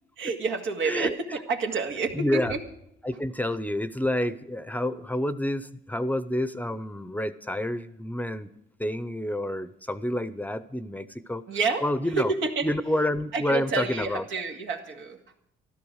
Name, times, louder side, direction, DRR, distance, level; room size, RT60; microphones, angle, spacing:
voice 1, 0.2-2.6 11.5-11.8 12.2-12.7 13.3-15.2, right 4 dB, 85° right, 2 dB, 2.1 m, -29 dB
voice 2, 0.8-1.4 2.1-2.6 3.0-8.5 8.8-11.4 11.8-12.3 12.6-14.2, left 1 dB, 10° left, 14 dB, 0.7 m, -29 dB
14.0 x 12.5 x 6.4 m, 0.78 s
cardioid pair, 90°, 20 cm